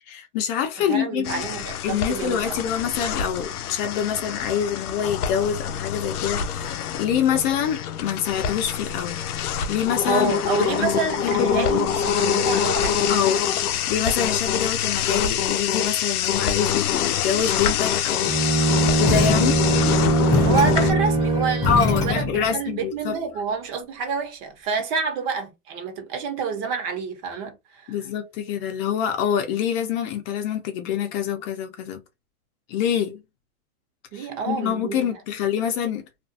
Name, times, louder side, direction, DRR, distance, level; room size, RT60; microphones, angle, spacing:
voice 1, 0.1-1.4 1.8-10.3 10.6-10.9 11.2-11.7 13.1-18.4 19.0-19.6 20.2-20.5 21.7-23.2 27.9-32.0 32.7-33.2 34.1-36.0, left 8 dB, 40° left, 0.7 m, -26 dB
voice 2, 0.8-2.7 10.1-13.2 20.4-27.9 34.1-35.2, right 5 dB, 40° right, 1.0 m, -28 dB
sound 1, 1.2-20.9, left 8 dB, 85° left, 0.6 m, -25 dB
Bowed string instrument, 18.3-22.3, right 2 dB, 15° right, 0.8 m, -22 dB
sound 2, 19.0-22.5, left 3 dB, 10° left, 0.3 m, -26 dB
2.5 x 2.3 x 2.6 m
hypercardioid pair, 130°, 43 cm